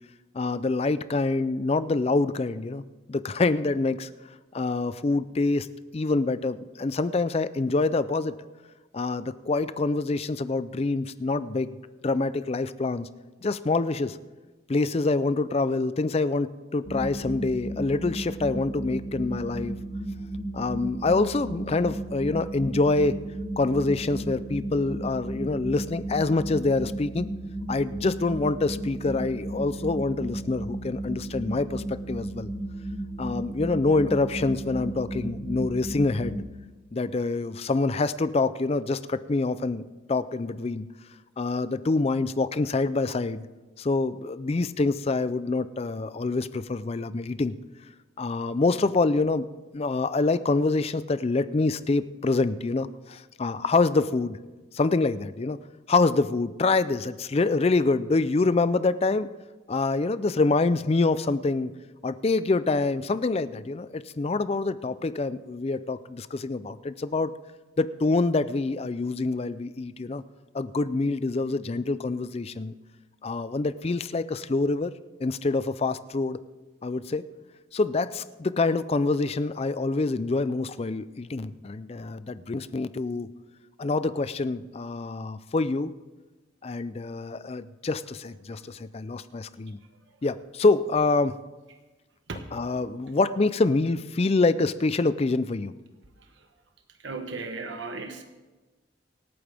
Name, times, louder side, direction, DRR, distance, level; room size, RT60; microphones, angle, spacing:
voice 1, 0.3-2.8 3.1-4.1 4.5-5.7 5.9-8.4 8.9-11.8 12.0-13.1 13.4-14.2 14.7-19.8 20.5-23.2 23.6-27.3 27.7-32.5 33.2-36.4 36.9-39.8 40.1-40.9 41.4-43.5 43.8-47.6 48.2-49.5 49.7-54.4 54.7-55.6 55.9-59.3 59.7-61.8 62.0-67.3 67.8-70.2 70.5-72.7 73.2-74.9 75.2-76.4 76.8-77.2 77.7-83.3 83.8-85.9 86.6-89.8 90.2-91.4 92.5-95.7, left 3 dB, 30° left, 14 dB, 0.4 m, -26 dB
sound 1, 16.8-36.4, right 1 dB, 70° left, 4.4 m, -34 dB
voice 2, 97.0-98.2, right 3 dB, 65° right, 5 dB, 1.1 m, -36 dB
25.5 x 8.8 x 3.5 m, 1.2 s
head